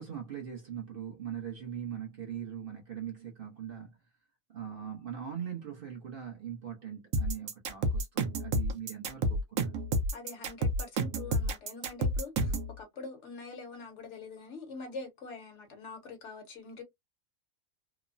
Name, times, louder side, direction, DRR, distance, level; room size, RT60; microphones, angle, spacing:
voice 1, 0.0-4.0 4.5-9.7, right 9 dB, 45° right, 1.0 m, -41 dB
sound 1, 7.1-12.7, right 1 dB, 80° right, 1.1 m, -30 dB
voice 2, 10.1-16.8, left 3 dB, 60° left, 1.1 m, -44 dB
3.0 x 2.1 x 2.5 m
omnidirectional pair, 1.4 m